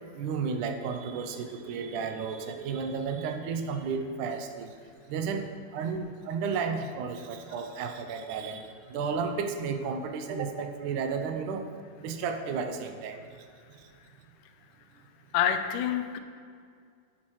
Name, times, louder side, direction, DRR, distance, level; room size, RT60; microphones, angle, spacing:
voice 1, 0.2-4.7 5.1-11.7 12.0-13.2, right 5 dB, 85° right, 6 dB, 2.1 m, -33 dB
voice 2, 15.3-16.2, left 9 dB, 85° left, 8 dB, 2.2 m, -27 dB
10.0 x 8.6 x 3.1 m, 2.2 s
omnidirectional pair, 3.6 m